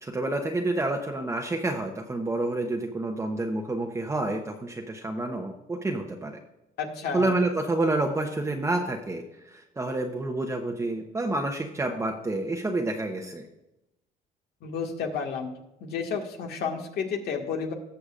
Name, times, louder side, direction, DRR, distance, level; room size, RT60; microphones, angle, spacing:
voice 1, 0.0-6.4 7.1-9.2 9.5-13.4, right 2 dB, 15° right, 1 dB, 0.9 m, -28 dB
voice 2, 6.8-7.3 14.6-15.5 15.8-17.7, left 6 dB, 70° left, 2 dB, 1.9 m, -31 dB
18.5 x 6.8 x 2.5 m, 0.91 s
cardioid pair, 110°, 17 cm